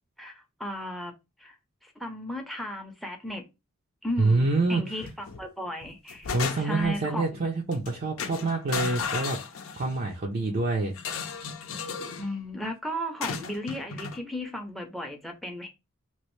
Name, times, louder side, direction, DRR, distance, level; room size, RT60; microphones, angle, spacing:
voice 1, 0.2-1.1 1.4-1.6 1.8-3.4 4.0-6.3 6.6-7.3 12.2-15.7, left 1 dB, ahead, 0.6 m, -35 dB
voice 2, 4.2-4.8 6.3-9.4 9.8-10.9, right 3 dB, 45° right, 0.5 m, -26 dB
sound 1, 5.0-5.4 5.8-6.9 7.7-7.9 8.2-10.0 10.9-12.3 13.2-14.2, left 6 dB, 65° left, 0.5 m, -34 dB
3.0 x 2.5 x 3.1 m
head